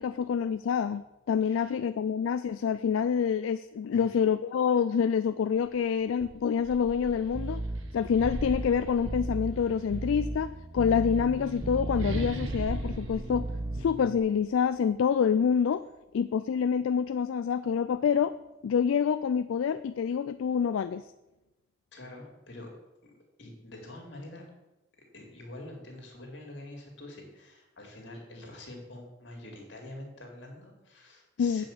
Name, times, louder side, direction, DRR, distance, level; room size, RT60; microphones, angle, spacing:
voice 1, 0.0-7.6 7.9-13.5 13.8-15.8 16.1-18.4 18.6-21.0 31.4-31.6, left 7 dB, 85° left, 12 dB, 0.3 m, -27 dB
sound 1, 5.6-5.8 6.2-9.8 10.8-14.4, right 1 dB, 85° right, 1.3 m, -39 dB
sound 2, 7.3-14.2, right 2 dB, 30° right, 0.4 m, -36 dB
voice 2, 21.9-22.7 23.0-23.1 23.4-24.5 25.1-31.7, left 1 dB, 65° left, 1 dB, 2.4 m, -46 dB
8.4 x 5.2 x 7.2 m, 0.99 s
head